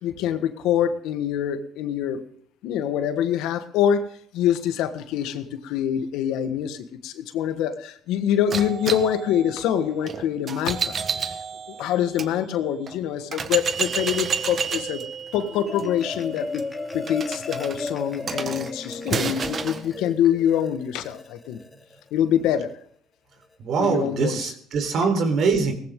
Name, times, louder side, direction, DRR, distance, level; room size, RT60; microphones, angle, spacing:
voice 1, 0.0-2.2 2.6-4.1 4.3-11.0 11.7-15.0 15.3-16.7 16.9-21.6 22.1-22.7 23.8-24.5, left 9 dB, 80° left, 9 dB, 1.5 m, -25 dB
sound 1, 8.5-12.3 12.9-13.0 13.3-19.8, right 6 dB, 40° right, 1.3 m, -30 dB
Marimba xylophone, 15.4-22.0, left 3 dB, 15° left, 2.4 m, -35 dB
voice 2, 23.6-25.7, right 5 dB, 60° right, 6 dB, 4.0 m, -23 dB
18.5 x 15.0 x 3.8 m, 0.64 s
supercardioid pair, 85°, 0 cm